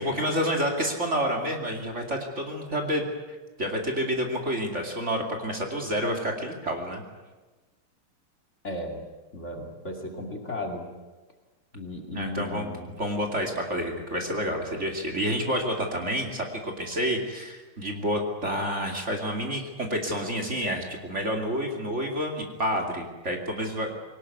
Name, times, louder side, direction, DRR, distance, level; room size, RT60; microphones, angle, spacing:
voice 1, 0.0-3.0 3.6-7.0 12.1-12.7 13.0-23.9, equal, 30° right, 2 dB, 2.8 m, -29 dB
voice 2, 8.6-9.0 9.3-10.9 11.7-12.9, left 1 dB, 30° left, 2 dB, 2.8 m, -35 dB
22.5 x 19.0 x 9.5 m, 1.2 s
omnidirectional pair, 2.4 m